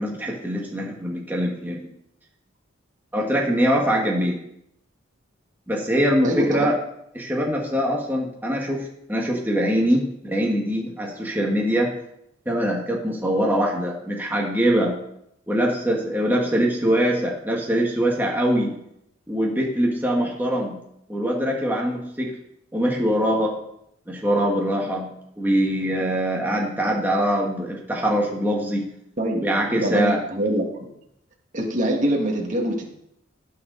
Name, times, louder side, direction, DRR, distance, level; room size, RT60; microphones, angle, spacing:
voice 1, 0.0-1.9 3.1-4.4 5.7-6.7 7.1-11.9 12.4-15.0 15.5-18.7 19.3-20.8 21.1-22.3 22.7-23.6 24.1-28.9 29.4-30.2, equal, 10° right, -2 dB, 1.6 m, -23 dB
voice 2, 6.2-6.7 29.2-29.5 29.8-30.9 31.5-32.9, right 1 dB, 40° right, 0 dB, 1.9 m, -24 dB
18.0 x 6.7 x 4.0 m, 0.77 s
head